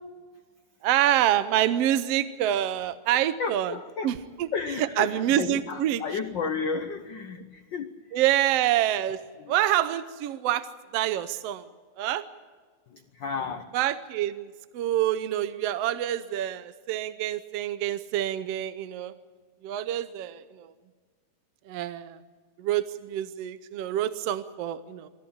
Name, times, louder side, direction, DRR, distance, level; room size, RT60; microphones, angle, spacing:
voice 1, 0.8-3.7 4.0-4.5 5.0-6.0 8.1-9.2 9.5-11.6 12.0-12.3 13.7-19.1 19.6-20.7 21.7-22.2 22.6-25.1, right 12 dB, 70° right, 12 dB, 1.6 m, -27 dB
voice 2, 3.1-8.0 9.4-9.5 12.9-13.6, left 5 dB, 85° left, 9 dB, 1.0 m, -33 dB
27.5 x 14.5 x 8.7 m, 1.5 s
omnidirectional pair, 3.4 m